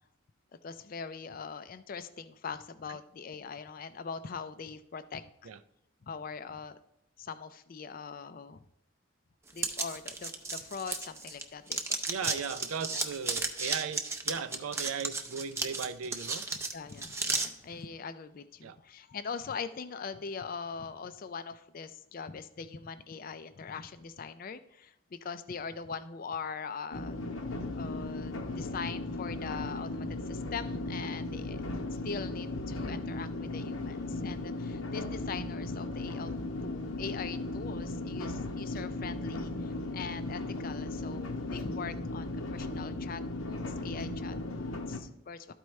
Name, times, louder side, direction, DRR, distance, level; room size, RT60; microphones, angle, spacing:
voice 1, 0.6-5.5 6.0-6.8 7.2-8.6 9.5-11.8 12.2-12.6 12.9-13.1 16.7-27.3 27.7-31.6 31.9-36.3 36.6-45.5, left 5 dB, 45° left, 12 dB, 0.4 m, -42 dB
sound 1, 9.6-11.4 11.7-17.5, right 3 dB, 15° right, 0.5 m, -34 dB
voice 2, 12.1-16.4 18.6-18.8, right 6 dB, 85° right, 12 dB, 0.5 m, -37 dB
sound 2, 26.9-45.0, left 2 dB, 80° left, 0.9 m, -36 dB
12.5 x 4.5 x 3.2 m, 0.80 s
head